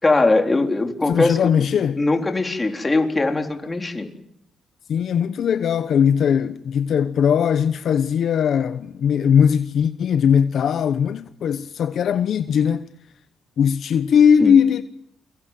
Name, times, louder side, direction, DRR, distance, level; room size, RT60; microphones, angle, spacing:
voice 1, 0.0-1.7 2.0-4.1 14.4-14.6, left 2 dB, 20° left, 4.0 m, -20 dB
voice 2, 1.1-2.0 4.9-12.9 13.6-14.8, left 7 dB, 65° left, 1.0 m, -19 dB
29.5 x 24.0 x 7.6 m
cardioid pair, 90°, 0 cm